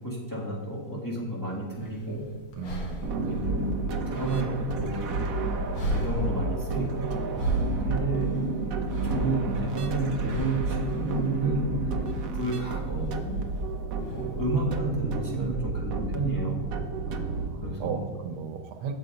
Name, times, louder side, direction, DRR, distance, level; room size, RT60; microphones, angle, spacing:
voice 1, 0.0-2.2 3.2-5.1 5.5-7.0 7.8-8.4 9.0-12.0 12.3-13.4 14.1-16.6 17.5-18.0, right 2 dB, 10° left, -5 dB, 2.2 m, -31 dB
sound 1, 1.7-14.8, right 1 dB, 75° left, 2.3 m, -36 dB
voice 2, 2.6-3.4 7.5-7.8 14.0-14.2 17.1-18.9, right 6 dB, 80° right, 6 dB, 1.6 m, -37 dB
sound 2, 3.0-17.5, right 3 dB, 65° right, 0.9 m, -31 dB
sound 3, 7.1-12.9, left 1 dB, 55° left, 2.0 m, -43 dB
8.8 x 6.7 x 5.1 m, 1.3 s
omnidirectional pair, 2.3 m